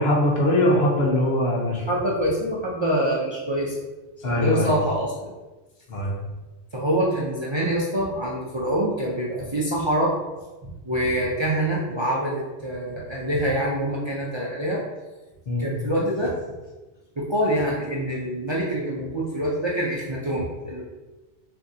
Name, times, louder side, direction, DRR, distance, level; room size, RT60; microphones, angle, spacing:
voice 1, 0.0-1.8 4.2-4.7 5.9-6.1 15.5-15.7, left 1 dB, 65° left, -3 dB, 1.3 m, -21 dB
voice 2, 1.9-3.7 4.2-5.3 6.7-10.1 10.8-14.8 15.6-16.3 17.2-20.8, right 1 dB, 35° right, -5 dB, 0.5 m, -25 dB
6.1 x 2.6 x 2.7 m, 1.2 s
omnidirectional pair, 1.2 m